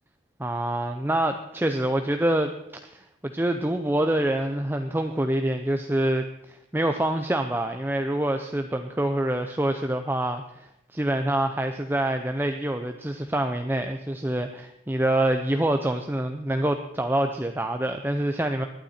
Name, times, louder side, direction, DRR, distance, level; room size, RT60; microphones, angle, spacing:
voice 1, 0.4-2.5 2.9-18.6, right 1 dB, 10° right, 6 dB, 0.6 m, -26 dB
20.0 x 12.0 x 4.3 m, 0.85 s
head